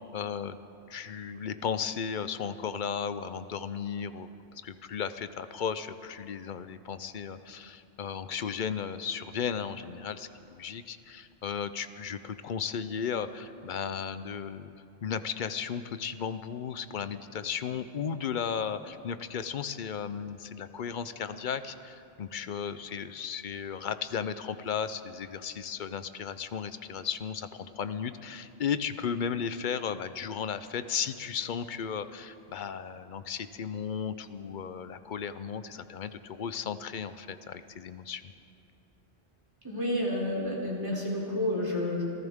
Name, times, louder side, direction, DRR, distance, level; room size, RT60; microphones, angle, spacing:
voice 1, 0.1-0.6 0.9-14.7 15.0-38.3, left 7 dB, 55° left, 12 dB, 0.7 m, -35 dB
voice 2, 39.6-42.0, left 1 dB, 20° right, -4 dB, 3.6 m, -30 dB
27.5 x 14.5 x 3.6 m, 2.6 s
omnidirectional pair, 1.1 m